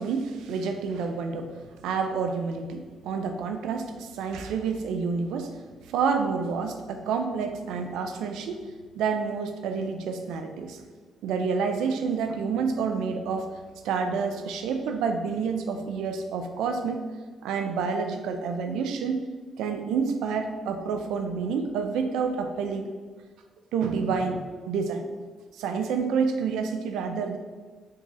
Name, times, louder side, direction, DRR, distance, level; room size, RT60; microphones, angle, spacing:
voice 1, 0.0-5.6 5.9-8.7 8.9-10.8 11.2-13.5 13.8-17.0 17.4-19.3 19.6-22.9 23.7-25.1 25.6-27.4, right 5 dB, 90° right, 6 dB, 0.3 m, -28 dB
3.0 x 2.7 x 3.6 m, 1.4 s
cardioid pair, 90°, 0 cm